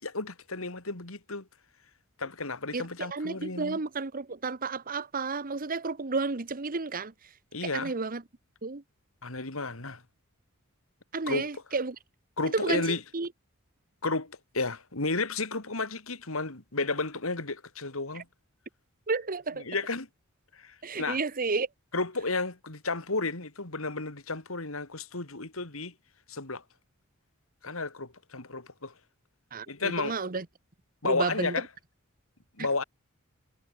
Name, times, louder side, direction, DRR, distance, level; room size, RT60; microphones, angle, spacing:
voice 1, 0.0-1.5 2.2-3.8 7.5-7.9 9.2-10.0 11.3-11.5 12.4-13.0 14.0-18.3 19.6-20.1 20.5-21.2 21.9-25.9 26.3-26.6 27.6-28.9 29.7-30.2 31.0-31.7 32.6-32.8, left 3 dB, 75° left, 3.0 m, -32 dB
voice 2, 2.7-7.1 7.6-8.2 8.6-8.8 11.1-12.0 12.5-13.3 19.1-19.7 20.8-21.7 29.5-30.4 31.0-31.5, right 4 dB, 40° right, 1.1 m, -32 dB
head